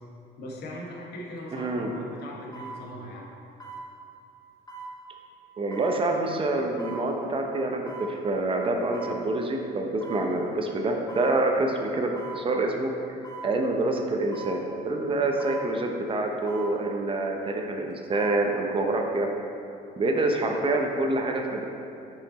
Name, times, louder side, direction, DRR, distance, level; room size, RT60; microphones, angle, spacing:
voice 1, 0.4-3.3, left 1 dB, 70° left, -2 dB, 1.3 m, -39 dB
sound 1, 1.4-1.5 2.5-2.8 3.6-3.8 4.7-4.9 5.7-6.0 6.8-7.0 7.9-8.1 8.9-9.2 10.0-10.3 11.1-11.3 12.2-12.4 13.2-13.5 14.3-14.6 15.4-15.7 16.5-16.7 17.9-18.4 18.8-18.9, right 4 dB, 25° left, 1.5 m, -40 dB
voice 2, 1.5-1.9 5.6-12.9 13.4-19.3 20.0-21.6, right 2 dB, 30° right, 2 dB, 0.7 m, -26 dB
5.7 x 5.6 x 4.1 m, 2.7 s
cardioid pair, 110°, 17 cm